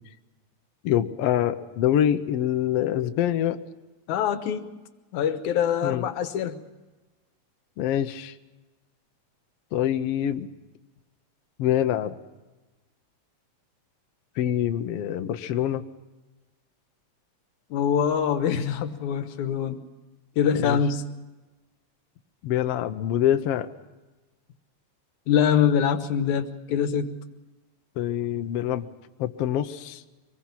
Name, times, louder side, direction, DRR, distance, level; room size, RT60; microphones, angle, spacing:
voice 1, 0.8-3.6 5.8-6.0 7.8-8.3 9.7-10.5 11.6-12.1 14.4-15.8 20.5-20.8 22.4-23.7 28.0-28.8 29.2-30.0, left 11 dB, 65° left, 8 dB, 1.7 m, -25 dB
voice 2, 4.1-4.8 5.1-6.6 17.7-19.8 20.4-21.0 25.3-27.2, left 8 dB, 85° left, 10 dB, 2.6 m, -24 dB
24.5 x 21.0 x 5.9 m, 1.2 s
omnidirectional pair, 3.3 m